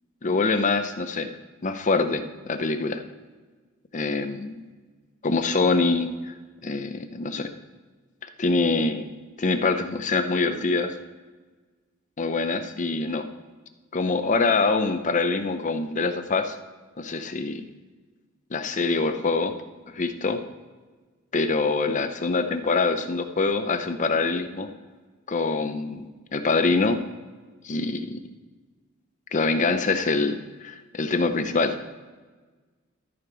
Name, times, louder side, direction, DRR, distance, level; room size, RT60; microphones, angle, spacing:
voice 1, 0.2-1.3 1.6-3.0 3.9-4.6 5.2-6.3 6.6-7.5 8.4-9.1 9.4-10.9 12.2-13.3 13.9-16.6 17.0-17.6 18.5-19.6 19.9-20.4 21.3-24.7 25.3-26.1 26.3-27.0 27.6-28.2 29.3-31.8, left 3 dB, 40° left, 8 dB, 0.6 m, -24 dB
14.0 x 5.2 x 4.5 m, 1.3 s
head